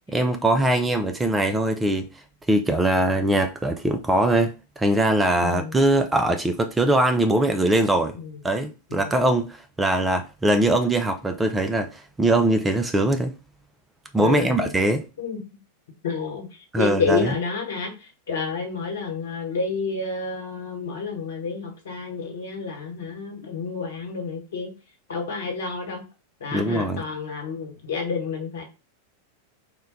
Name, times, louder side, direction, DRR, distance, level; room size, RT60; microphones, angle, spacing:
voice 1, 0.1-2.1 2.5-8.2 8.4-13.3 14.1-15.0 16.7-17.3 26.5-27.0, right 1 dB, 10° right, 0.4 m, -22 dB
voice 2, 5.4-5.8 8.1-8.4 8.9-9.1 14.2-14.7 15.2-15.6 16.0-24.7 25.1-26.0 26.4-28.6, left 5 dB, 60° left, 1.2 m, -30 dB
3.6 x 2.2 x 3.9 m
figure-of-eight pair, 90°, 0 cm